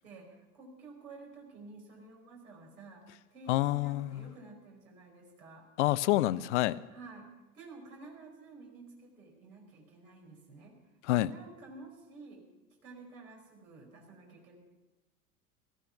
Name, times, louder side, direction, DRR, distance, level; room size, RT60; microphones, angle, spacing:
voice 1, 0.0-5.6 6.9-7.3 7.5-10.8 11.1-12.4 12.8-14.6, right 3 dB, 65° right, 1 dB, 5.0 m, -51 dB
voice 2, 3.5-4.2 5.8-6.8 11.1-11.3, left 16 dB, 50° left, 17 dB, 0.6 m, -27 dB
17.5 x 14.0 x 5.8 m, 1.1 s
figure-of-eight pair, 90°, 45 cm